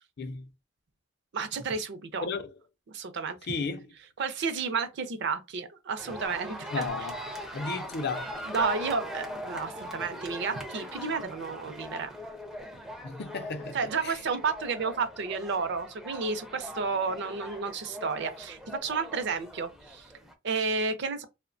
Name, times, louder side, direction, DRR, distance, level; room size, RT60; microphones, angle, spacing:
voice 1, 0.2-0.5 2.2-2.5 3.5-3.9 6.7-7.2 7.5-8.4 13.0-13.8 14.0-14.1, left 4 dB, 55° left, 0.5 m, -34 dB
voice 2, 1.3-2.3 2.9-3.4 4.2-6.9 8.5-12.2 13.7-20.1 20.4-21.3, right 5 dB, 60° right, 0.5 m, -31 dB
sound 1, 6.0-20.3, equal, ahead, 0.4 m, -41 dB
2.9 x 2.1 x 2.5 m
head